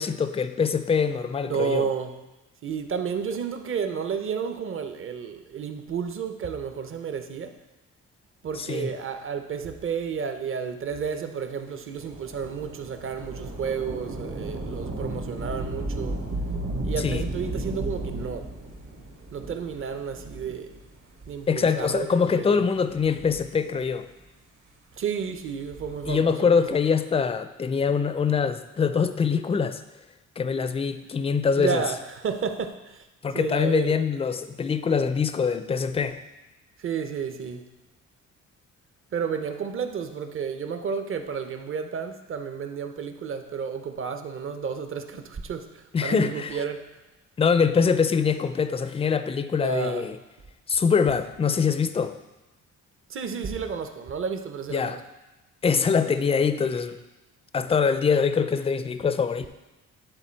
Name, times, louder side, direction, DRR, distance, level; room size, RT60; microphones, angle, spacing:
voice 1, 0.0-1.9 8.6-8.9 17.0-17.3 21.5-24.1 26.1-29.8 30.4-31.8 33.2-36.2 45.9-46.6 47.4-50.1 50.7-52.2 54.7-55.0 55.6-57.0 57.5-59.5, left 6 dB, 20° left, 11 dB, 0.4 m, -24 dB
voice 2, 1.4-2.2 2.6-7.5 8.4-16.2 16.8-18.5 19.3-20.7 21.3-22.7 25.0-26.7 31.6-33.0 33.3-33.9 36.8-37.7 39.1-47.0 49.6-50.1 53.1-55.0, right 6 dB, 45° right, 7 dB, 0.7 m, -31 dB
Thunder / Rain, 12.0-20.9 21.7-21.8 22.7-24.0 25.5-26.3, right 1 dB, 65° right, 1.7 m, -34 dB
10.0 x 3.8 x 4.5 m, 1.1 s
cardioid pair, 90°, 30 cm